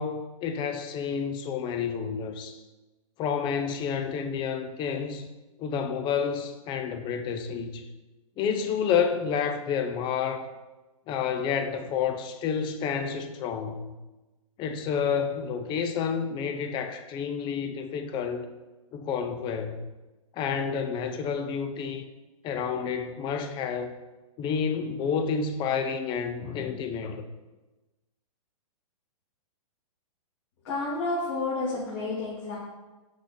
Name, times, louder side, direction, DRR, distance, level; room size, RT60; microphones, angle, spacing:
voice 1, 0.0-2.6 3.2-5.2 5.6-7.9 8.4-10.5 11.1-13.9 14.6-18.5 18.9-19.8 20.3-22.0 22.4-23.9 24.4-27.2, left 6 dB, 25° left, 0.6 m, -29 dB
voice 2, 30.6-32.6, left 3 dB, 50° left, 2.5 m, -30 dB
6.0 x 5.8 x 4.2 m
hypercardioid pair, 130°, 18 cm